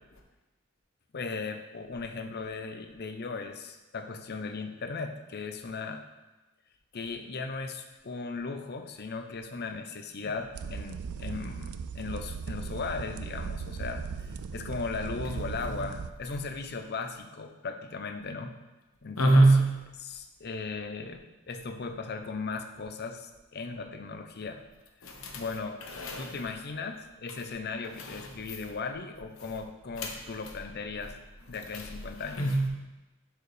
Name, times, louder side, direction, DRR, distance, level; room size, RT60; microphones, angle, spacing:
voice 1, 1.1-6.0 6.9-18.6 19.0-19.4 20.0-24.6 25.0-31.2 31.5-32.4, left 4 dB, 50° left, 6 dB, 0.6 m, -37 dB
sound 1, 10.5-16.1, right 5 dB, 85° right, 0.4 m, -38 dB
voice 2, 19.2-19.8 25.0-25.4 26.0-26.4 28.0-28.2 30.0-30.1 31.7-31.8 32.4-32.7, right 2 dB, 70° left, 1 dB, 1.2 m, -23 dB
10.5 x 4.7 x 3.3 m, 1.1 s
head